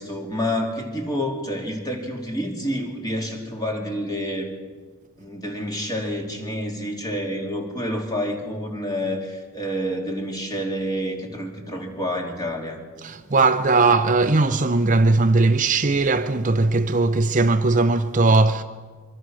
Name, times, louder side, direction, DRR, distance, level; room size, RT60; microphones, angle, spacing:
voice 1, 0.0-4.5 5.2-12.8, equal, 20° left, 3.3 m, -28 dB
voice 2, 13.0-18.6, right 3 dB, 40° right, 0.7 m, -19 dB
25.0 x 24.0 x 6.4 m
head